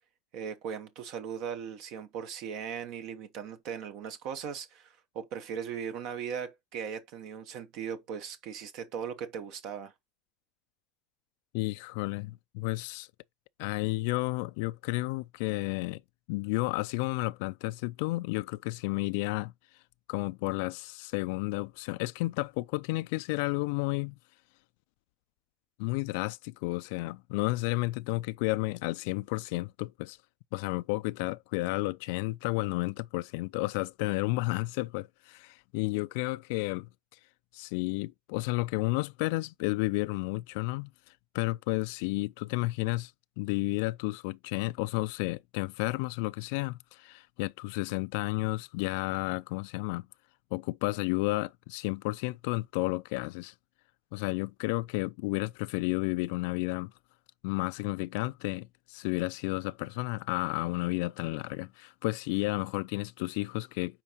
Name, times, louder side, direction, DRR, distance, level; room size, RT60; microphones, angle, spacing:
voice 1, 0.3-9.9, right 7 dB, 60° right, 1.0 m, -38 dB
voice 2, 11.5-13.1 13.6-16.0 16.3-19.5 20.1-24.2 25.8-30.2 30.5-36.9 37.5-40.9 41.3-43.1 43.4-50.1 50.5-53.5 54.1-56.9 57.4-64.0, left 22 dB, 75° left, 0.4 m, -32 dB
8.6 x 4.5 x 2.9 m
cardioid pair, 145°, 0 cm